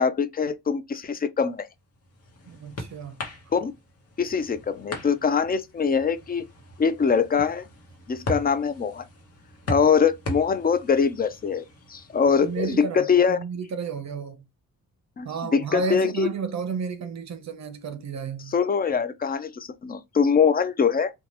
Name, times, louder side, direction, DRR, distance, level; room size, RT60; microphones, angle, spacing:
voice 1, 0.0-1.7 3.5-3.7 4.2-6.5 6.8-7.7 8.1-9.0 9.7-11.6 11.9-13.4 15.2-16.3 18.5-21.1, left 6 dB, 30° left, 0.4 m, -23 dB
sound 1, 1.7-12.8, left 1 dB, 45° left, 0.9 m, -39 dB
voice 2, 2.5-3.2 9.8-9.9 12.3-14.4 15.2-18.5, right 6 dB, 55° right, 0.6 m, -32 dB
2.7 x 2.2 x 3.1 m
cardioid pair, 95°, 34 cm